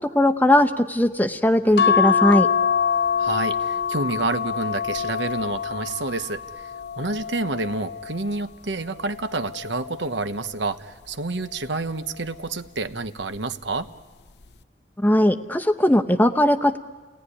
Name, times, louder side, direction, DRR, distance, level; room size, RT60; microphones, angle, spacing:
voice 1, 0.1-2.5 15.0-16.8, left 1 dB, 10° left, 7 dB, 0.8 m, -19 dB
sound 1, 1.8-8.4 9.0-10.4 11.7-12.1 12.4-12.5, left 7 dB, 65° left, 0.8 m, -25 dB
voice 2, 3.2-13.9, right 3 dB, 80° right, 10 dB, 1.1 m, -29 dB
29.5 x 18.5 x 9.9 m, 1.4 s
head